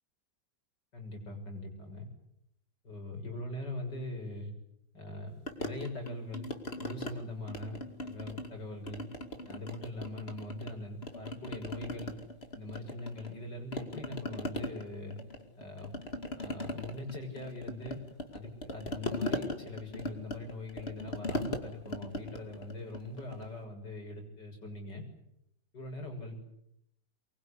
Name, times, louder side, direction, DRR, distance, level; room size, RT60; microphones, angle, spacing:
voice 1, 0.9-2.0 2.8-4.5 4.9-6.5 6.8-9.0 9.4-12.2 12.5-15.2 15.6-15.9 16.4-18.0 18.3-25.0 25.7-26.4, left 1 dB, 65° left, 3 dB, 7.3 m, -42 dB
sound 1, 5.5-7.1 7.5-8.6 8.9-10.7 11.0-13.4 13.7-23.5, left 1 dB, 30° left, 2.7 m, -39 dB
24.5 x 22.5 x 10.0 m, 0.79 s
omnidirectional pair, 2.1 m